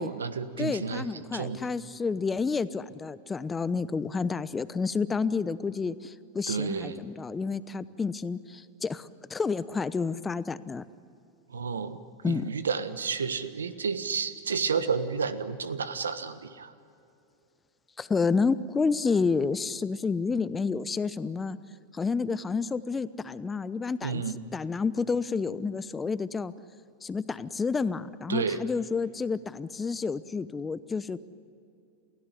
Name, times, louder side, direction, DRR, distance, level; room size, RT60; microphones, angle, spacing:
voice 1, 0.0-1.7 6.5-7.0 11.5-16.7 24.0-24.4 28.3-28.6, right 5 dB, 85° right, 12 dB, 1.4 m, -31 dB
voice 2, 0.6-10.8 12.2-12.5 18.0-21.6 21.9-24.2 24.5-26.5 27.0-31.2, left 4 dB, 15° left, 15 dB, 0.9 m, -30 dB
28.5 x 17.0 x 10.0 m, 2.7 s
hypercardioid pair, 95°, 0 cm